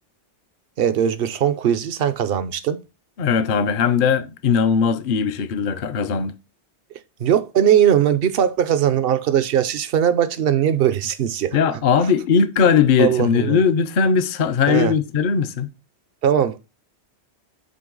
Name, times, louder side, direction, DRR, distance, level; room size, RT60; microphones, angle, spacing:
voice 1, 0.8-2.8 7.2-11.6 13.0-13.6 14.7-14.9 16.2-16.6, right 9 dB, 60° right, 0.8 m, -19 dB
voice 2, 3.2-6.3 11.5-15.7, left 6 dB, 55° left, 0.7 m, -19 dB
7.7 x 3.3 x 3.8 m
omnidirectional pair, 1.2 m